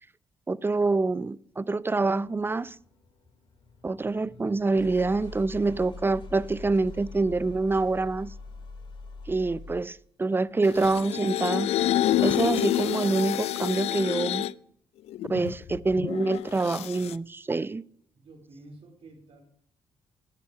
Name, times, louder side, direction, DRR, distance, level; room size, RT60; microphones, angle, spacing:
voice 1, 0.5-2.8 3.8-8.3 9.3-11.7 12.2-14.5 15.3-17.8, right 3 dB, 20° right, 0.5 m, -26 dB
sound 1, 2.2-10.0, left 3 dB, 50° left, 2.1 m, -44 dB
sound 2, 10.6-14.5 15.1-17.1, left 13 dB, 75° left, 0.4 m, -28 dB
voice 2, 15.3-15.7 18.1-19.4, right 2 dB, 60° right, 3.1 m, -50 dB
10.5 x 9.8 x 4.7 m
supercardioid pair, 65°, 11 cm